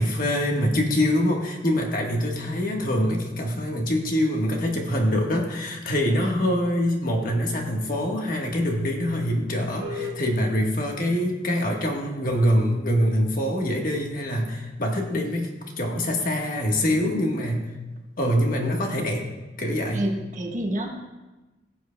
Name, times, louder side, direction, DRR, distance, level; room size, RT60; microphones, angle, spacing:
voice 1, 0.0-17.7 18.2-19.2 19.6-20.1, equal, 50° left, 1 dB, 1.3 m, -24 dB
sound 1, 9.8-19.6, left 3 dB, 70° right, 1.3 m, -45 dB
voice 2, 19.9-20.9, right 1 dB, 40° right, 0 dB, 1.3 m, -28 dB
16.5 x 7.7 x 2.2 m, 1.1 s
head